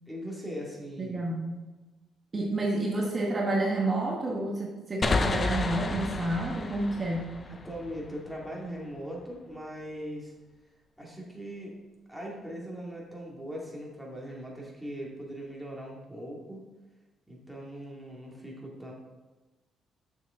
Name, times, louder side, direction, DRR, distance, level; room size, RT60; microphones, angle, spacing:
voice 1, 0.1-1.3 7.5-10.3 11.0-11.8 12.1-16.6 17.3-18.9, equal, ahead, -3 dB, 2.2 m, -40 dB
voice 2, 1.0-1.6 2.3-7.4, right 2 dB, 35° right, -2 dB, 1.2 m, -29 dB
sound 1, 5.0-8.5, left 3 dB, 35° left, 0.5 m, -31 dB
6.8 x 6.7 x 3.7 m, 1.2 s
cardioid pair, 90°, 0 cm